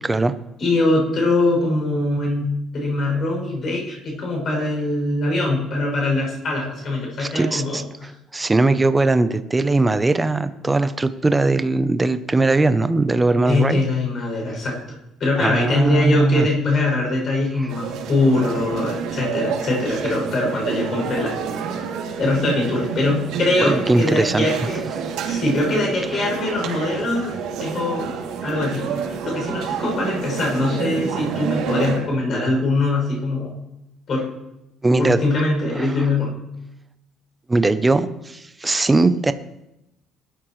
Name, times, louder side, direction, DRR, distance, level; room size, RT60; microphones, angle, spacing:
voice 1, 0.6-7.8 13.3-21.4 22.2-24.8 25.3-27.3 27.6-28.1 28.4-28.9 29.2-33.5 34.1-34.2 35.0-36.4, left 2 dB, 35° left, -1 dB, 6.7 m, -22 dB
voice 2, 7.2-13.8 15.4-16.5 17.6-17.7 23.7-24.5 25.0-25.3 26.1-26.2 34.8-35.2 35.8-35.9 37.5-39.3, right 2 dB, 10° right, 11 dB, 0.6 m, -20 dB
sound 1, 17.7-32.0, right 6 dB, 90° right, 2.7 m, -28 dB
20.0 x 12.5 x 3.2 m, 0.86 s
cardioid pair, 170°, 0 cm